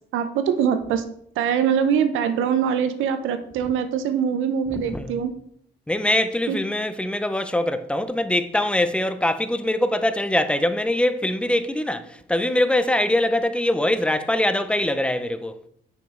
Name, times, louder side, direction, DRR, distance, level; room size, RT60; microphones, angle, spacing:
voice 1, 0.1-1.1 1.4-5.3 6.5-6.6, right 7 dB, 90° right, 0.7 m, -23 dB
voice 2, 4.7-5.2 5.9-15.6, left 1 dB, 5° left, 0.5 m, -23 dB
6.1 x 5.0 x 3.7 m
cardioid pair, 90°, 20 cm